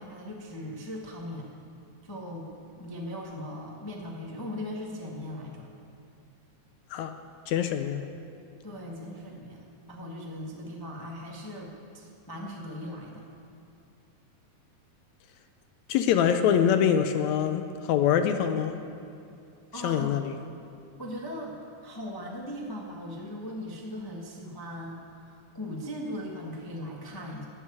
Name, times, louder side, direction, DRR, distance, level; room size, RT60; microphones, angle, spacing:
voice 1, 0.0-1.5 2.0-2.5 2.7-5.7 8.6-13.3 19.7-20.2 21.0-21.6 21.8-27.4, left 1 dB, 25° left, -2 dB, 0.4 m, -39 dB
voice 2, 7.5-8.1 15.9-18.8 19.8-20.4, left 8 dB, 75° left, 8 dB, 1.9 m, -24 dB
13.5 x 7.8 x 9.6 m, 2.5 s
omnidirectional pair, 3.5 m